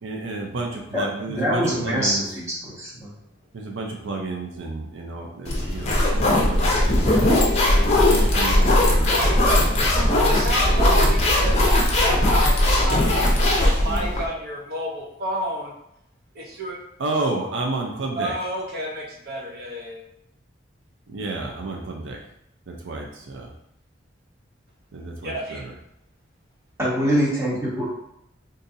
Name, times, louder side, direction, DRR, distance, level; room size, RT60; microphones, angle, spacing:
voice 1, 0.0-2.2 3.5-7.4 8.1-9.1 9.8-10.4 10.6-11.2 17.0-18.3 21.1-22.2 22.7-23.5 24.9-25.7, right 2 dB, 85° right, 0.5 m, -31 dB
voice 2, 0.9-3.1 26.8-27.9, equal, 15° right, 0.9 m, -24 dB
sound 1, 5.5-14.2, left 1 dB, 35° left, 0.6 m, -19 dB
voice 3, 9.0-9.6 10.1-15.7 16.3-16.8 18.2-20.0 25.2-25.6, equal, 50° right, 0.8 m, -30 dB
3.8 x 2.6 x 2.6 m
head